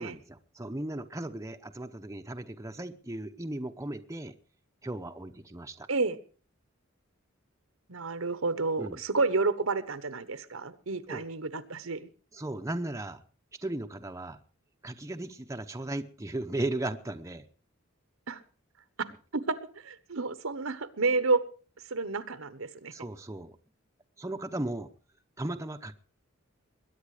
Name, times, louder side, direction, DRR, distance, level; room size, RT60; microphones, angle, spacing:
voice 1, 0.0-4.3 4.8-5.9 8.8-9.0 11.1-11.2 12.3-13.2 13.6-14.4 14.8-17.5 22.9-23.6 24.2-24.9 25.4-25.9, right 1 dB, 15° right, 6 dB, 0.8 m, -36 dB
voice 2, 7.9-12.1 18.3-18.4 19.0-19.6 19.8-21.4 21.9-22.9, right 3 dB, 75° right, 13 dB, 1.2 m, -30 dB
21.5 x 9.4 x 5.0 m, 0.38 s
head